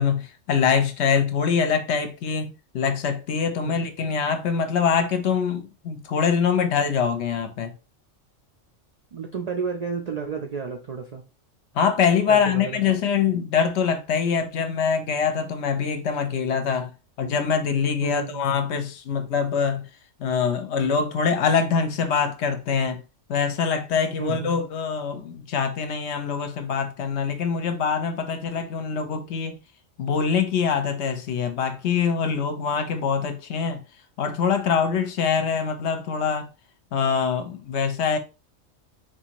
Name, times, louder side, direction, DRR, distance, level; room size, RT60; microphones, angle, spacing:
voice 1, 0.0-7.7 11.7-16.9 17.2-19.9 20.2-23.0 23.3-29.6 30.0-33.8 34.2-36.5 36.9-38.2, left 6 dB, 65° left, 0.8 m, -24 dB
voice 2, 9.1-11.2 12.3-12.8 18.0-18.5 24.2-24.6, right 6 dB, 65° right, 0.3 m, -31 dB
4.0 x 2.5 x 2.9 m
omnidirectional pair, 1.3 m